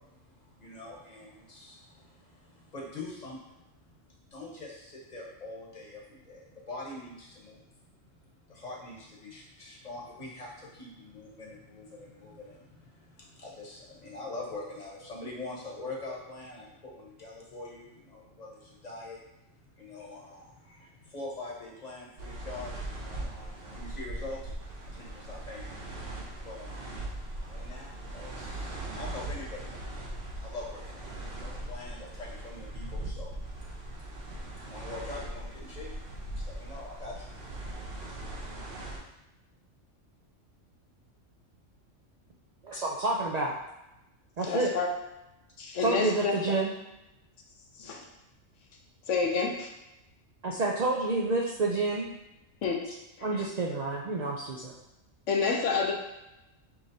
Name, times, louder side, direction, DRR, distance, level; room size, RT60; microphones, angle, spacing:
voice 1, 0.0-3.7 4.3-7.7 8.4-19.5 19.7-24.5 24.9-25.8 26.4-26.9 27.4-29.9 30.3-35.9 36.3-38.4, left 2 dB, 35° left, -4 dB, 1.0 m, -44 dB
sound 1, 22.2-39.0, right 1 dB, 50° right, 1.0 m, -40 dB
voice 2, 42.6-43.5 44.4-44.7 45.8-46.7 50.4-52.1 53.2-54.7, right 3 dB, 65° right, -2 dB, 0.4 m, -29 dB
voice 3, 44.4-44.9 45.6-46.3 47.8-48.1 49.1-49.7 52.6-52.8 53.2-53.4 55.3-55.9, left 5 dB, 75° left, 1 dB, 1.0 m, -28 dB
5.8 x 3.1 x 2.6 m, 0.93 s
omnidirectional pair, 1.3 m